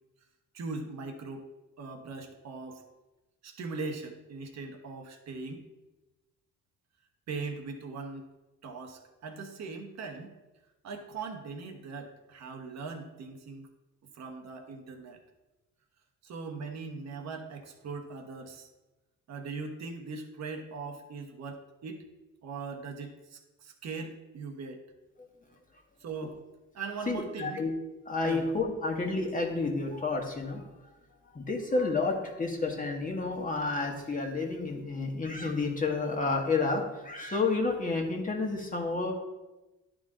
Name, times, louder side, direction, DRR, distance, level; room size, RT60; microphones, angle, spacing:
voice 1, 0.5-1.5 1.8-2.8 3.4-5.6 7.3-8.3 8.6-10.3 10.8-13.7 14.1-15.2 16.2-18.7 19.3-22.0 22.4-24.8 26.0-26.4 26.7-27.6 28.2-28.4, right 4 dB, 60° right, 3 dB, 1.2 m, -40 dB
voice 2, 27.1-27.7 28.0-30.7 31.2-39.1, left 3 dB, 25° left, 1 dB, 1.5 m, -30 dB
10.5 x 3.9 x 3.8 m, 1.1 s
cardioid pair, 90°, 30 cm